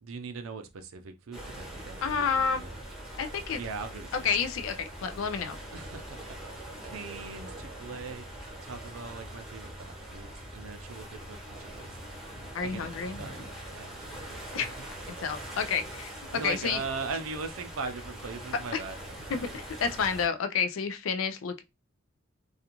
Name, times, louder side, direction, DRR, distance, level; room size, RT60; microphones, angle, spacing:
voice 1, 0.0-2.7 3.5-4.3 5.7-12.0 12.6-12.9 13.2-14.7 16.3-19.4, right 4 dB, 85° right, 0.5 m, -40 dB
sound 1, 1.3-20.3, right 1 dB, ahead, 0.8 m, -43 dB
voice 2, 2.0-2.6 3.2-3.6 4.2-5.6 12.5-13.2 14.5-14.8 15.1-16.1 16.4-16.8 18.7-18.8 19.3-21.6, left 6 dB, 70° left, 0.4 m, -30 dB
2.4 x 2.3 x 2.9 m
head